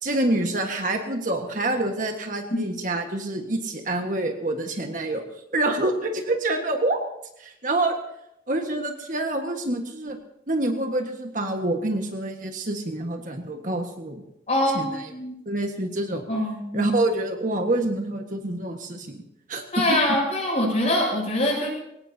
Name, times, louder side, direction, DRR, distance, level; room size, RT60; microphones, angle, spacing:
voice 1, 0.0-5.2 5.5-7.0 7.4-8.0 8.5-10.2 10.5-14.2 14.7-15.1 15.4-16.2 16.7-19.2 19.5-20.0, right 2 dB, 45° right, 3 dB, 1.5 m, -26 dB
voice 2, 14.5-15.3 16.3-16.9 19.7-21.7, left 1 dB, 40° left, -2 dB, 7.6 m, -24 dB
22.0 x 18.5 x 2.8 m, 0.81 s
head